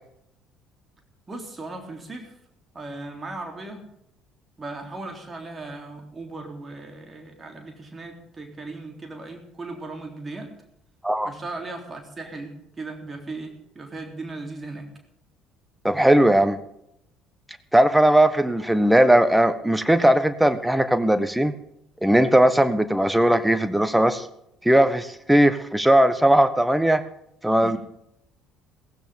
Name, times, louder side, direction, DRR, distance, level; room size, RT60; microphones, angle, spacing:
voice 1, 1.3-2.3 2.7-3.8 4.6-10.5 11.2-14.9 27.6-27.8, right 2 dB, 25° right, 3 dB, 3.7 m, -37 dB
voice 2, 15.8-16.6 17.7-21.5 22.0-24.3 24.6-27.0 27.4-27.8, right 1 dB, 5° right, 12 dB, 1.2 m, -18 dB
16.5 x 15.5 x 3.8 m, 0.78 s
figure-of-eight pair, 55°, 0 cm